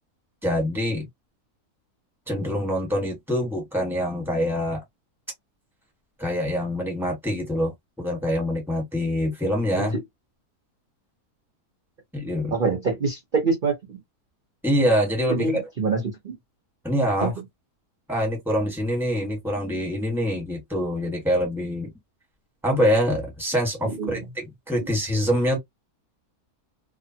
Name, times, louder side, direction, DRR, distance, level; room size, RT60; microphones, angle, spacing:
voice 1, 0.4-1.1 2.3-4.8 6.2-7.7 8.0-10.0 12.1-12.5 14.6-15.6 16.8-17.3 18.1-21.9 22.6-25.6, equal, ahead, 1.4 m, -25 dB
voice 2, 12.5-14.0 15.3-16.3 17.2-17.3 23.8-24.2, right 4 dB, 40° right, 0.9 m, -25 dB
2.6 x 2.5 x 2.8 m
omnidirectional pair, 1.6 m